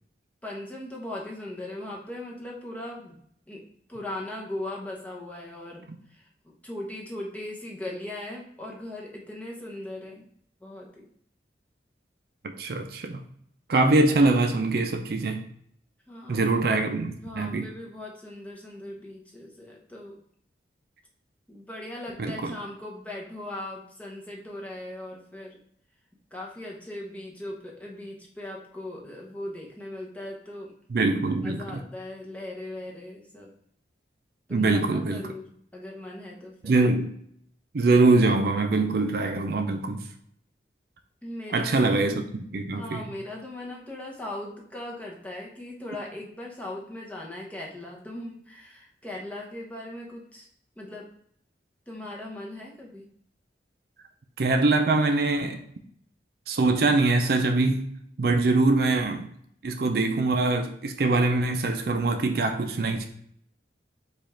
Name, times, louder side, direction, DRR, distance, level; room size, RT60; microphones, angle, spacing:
voice 1, 0.4-3.2 3.5-3.6 3.9-5.8 6.1-10.3 10.6-11.0 16.1-16.5 17.2-20.2 21.5-25.6 26.3-30.7 31.4-33.5 34.5-35.4 35.7-36.7 41.2-42.2 42.7-50.5 50.8-51.1 51.9-53.1, left 1 dB, 10° left, -2 dB, 0.8 m, -39 dB
voice 2, 12.4-13.2 13.7-15.4 16.3-17.7 22.2-22.5 30.9-31.8 34.5-35.3 36.6-37.1 37.7-40.0 41.5-43.0 54.4-55.6 56.5-57.9 58.2-59.3 59.6-63.1, right 2 dB, 60° right, 5 dB, 0.4 m, -23 dB
5.1 x 2.4 x 4.2 m, 0.67 s
head